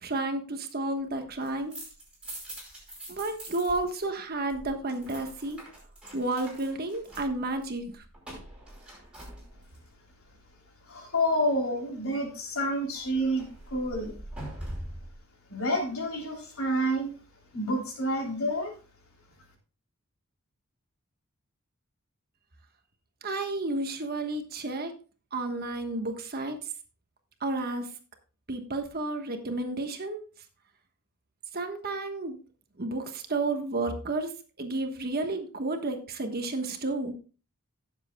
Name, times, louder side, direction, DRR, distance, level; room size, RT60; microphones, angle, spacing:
voice 1, 0.0-1.8 3.1-5.6 6.1-8.0 23.2-24.9 25.3-26.6 27.4-27.9 28.5-30.2 31.5-32.4 32.8-34.3 34.6-37.1, right 2 dB, 45° right, 6 dB, 1.3 m, -31 dB
sound 1, 1.3-4.0 4.3-9.9 12.9-15.1, right 1 dB, 5° right, 5.0 m, -44 dB
voice 2, 10.9-14.1 15.5-17.1 17.5-18.7, equal, 70° left, 1 dB, 3.3 m, -29 dB
17.0 x 7.4 x 2.3 m, 0.36 s
head